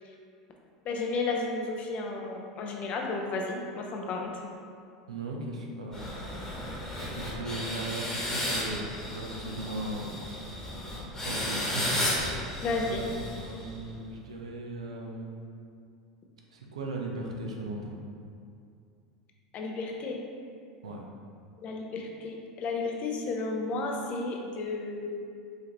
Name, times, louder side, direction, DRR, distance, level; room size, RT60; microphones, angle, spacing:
voice 1, 0.8-4.4 12.6-13.0 19.5-20.2 21.6-25.1, left 3 dB, 45° left, 1 dB, 0.6 m, -33 dB
voice 2, 5.1-10.2 10.8-12.5 12.7-13.0 13.3-15.4 16.5-18.0 20.8-21.0, right 2 dB, 85° right, 0 dB, 0.6 m, -38 dB
sound 1, 5.9-13.9, left 1 dB, 15° left, 1.2 m, -34 dB
4.9 x 2.8 x 3.0 m, 2.3 s
hypercardioid pair, 85°, 3 cm